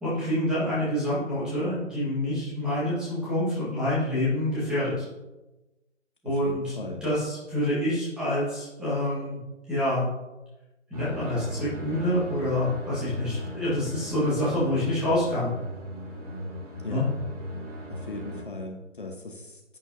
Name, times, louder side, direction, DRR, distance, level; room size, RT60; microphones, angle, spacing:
voice 1, 0.0-5.1 6.2-6.7 7.0-9.4 9.7-10.1 10.9-15.5 16.9-17.0, left 1 dB, ahead, -11 dB, 1.7 m, -27 dB
voice 2, 6.2-7.0 16.8-17.1 17.9-19.8, left 2 dB, 40° left, 2 dB, 1.1 m, -38 dB
sound 1, 10.9-18.4, equal, 30° right, 2.6 m, -37 dB
10.5 x 8.9 x 2.8 m, 1.0 s
figure-of-eight pair, 160°, 38 cm